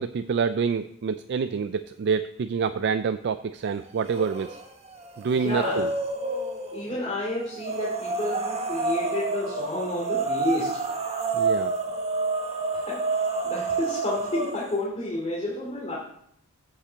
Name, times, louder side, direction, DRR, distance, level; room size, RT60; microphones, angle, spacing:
voice 1, 0.0-4.6 5.2-5.9 11.3-11.7, right 6 dB, 50° right, 11 dB, 0.4 m, -27 dB
sound 1, 4.0-4.6 5.0-6.8 7.6-14.7, right 3 dB, 30° right, 1.1 m, -29 dB
voice 2, 5.3-5.8 6.7-10.8 12.7-13.0 13.4-16.0, left 1 dB, 25° left, -6 dB, 2.7 m, -30 dB
8.4 x 5.7 x 7.8 m, 0.71 s
head